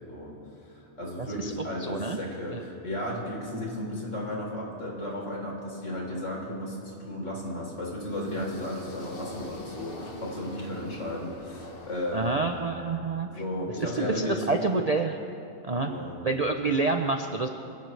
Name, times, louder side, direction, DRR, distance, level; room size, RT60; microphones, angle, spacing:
voice 1, 0.6-12.5 13.3-14.9 15.7-16.2, left 1 dB, 60° left, -3 dB, 4.1 m, -34 dB
voice 2, 1.2-1.5 1.8-2.2 2.5-2.6 12.1-13.4 13.8-15.2 15.6-15.9 16.2-17.5, right 3 dB, 40° right, 4 dB, 0.6 m, -28 dB
sound 1, 8.0-13.1, left 1 dB, 45° left, 1.6 m, -43 dB
26.0 x 16.5 x 3.3 m, 2.7 s
omnidirectional pair, 1.4 m